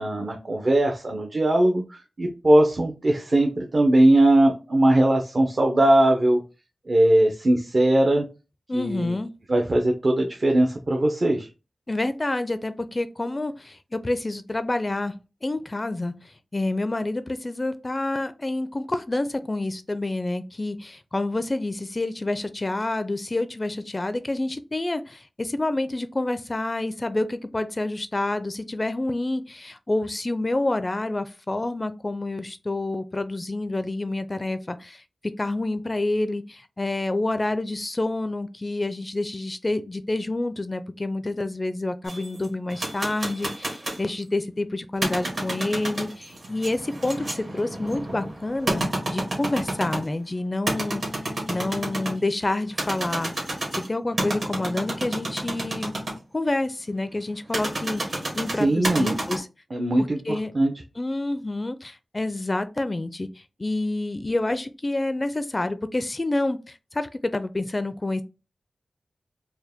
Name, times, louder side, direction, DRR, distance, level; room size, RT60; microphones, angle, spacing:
voice 1, 0.0-6.4 6.9-8.3 8.7-9.1 9.5-11.5 58.6-59.2 59.7-60.7, right 1 dB, 50° right, 0.6 m, -20 dB
voice 2, 8.7-9.3 11.9-15.1 15.4-35.0 35.4-51.0 51.5-53.3 53.7-55.9 56.3-59.5 60.0-60.5 61.0-63.3 63.6-68.2, left 2 dB, 35° left, 0.4 m, -28 dB
sound 1, 42.0-44.1 44.9-50.2 50.7-52.2 52.7-56.1 57.5-59.4, right 1 dB, 65° right, 1.7 m, -29 dB
4.5 x 2.1 x 3.4 m
wide cardioid pair, 65°, 0 cm